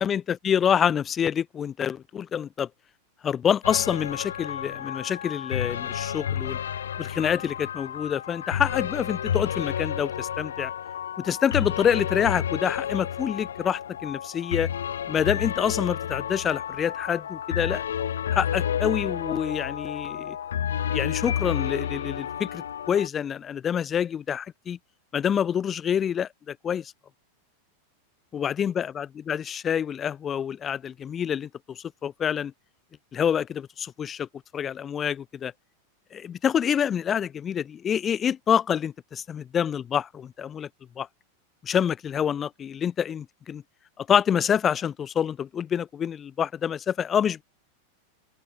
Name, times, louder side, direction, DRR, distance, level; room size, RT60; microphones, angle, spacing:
voice 1, 0.0-2.7 3.2-6.6 7.0-10.7 11.2-14.7 15.1-17.8 18.3-20.4 20.9-24.8 25.1-26.9 28.3-32.5 33.1-34.3 34.5-35.5 36.1-40.7 41.0-41.1 41.6-43.6 44.0-47.4, left 8 dB, 25° left, 1.1 m, -27 dB
sound 1, 3.6-23.1, left 9 dB, 65° left, 1.8 m, -31 dB
open air
figure-of-eight pair, 90°, 0 cm